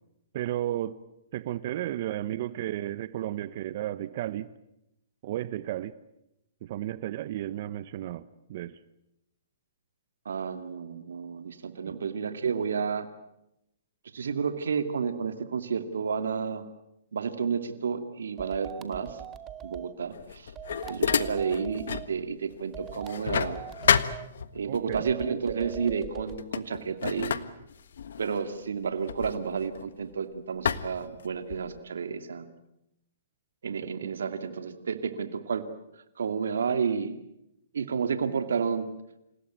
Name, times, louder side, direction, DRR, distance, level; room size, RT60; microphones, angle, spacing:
voice 1, 0.3-1.0 1.3-4.5 5.2-6.0 6.6-8.8 11.8-11.9 24.7-25.0 33.8-34.1, right 13 dB, 50° right, 0.9 m, -33 dB
voice 2, 10.3-13.1 14.1-16.6 17.1-19.2 19.6-20.5 20.9-23.6 24.5-27.4 28.2-32.5 33.6-35.7 36.2-37.1 37.7-38.9, right 6 dB, 80° right, 2.4 m, -31 dB
sound 1, 18.4-19.9 20.6-22.1 22.7-24.3 24.9-26.4, right 9 dB, 20° right, 1.6 m, -42 dB
sound 2, 20.1-22.1 22.5-24.8 25.7-25.9 26.3-30.1 30.6-31.8, left 7 dB, 75° left, 1.5 m, -30 dB
28.0 x 17.0 x 9.3 m
hypercardioid pair, 145°, 0 cm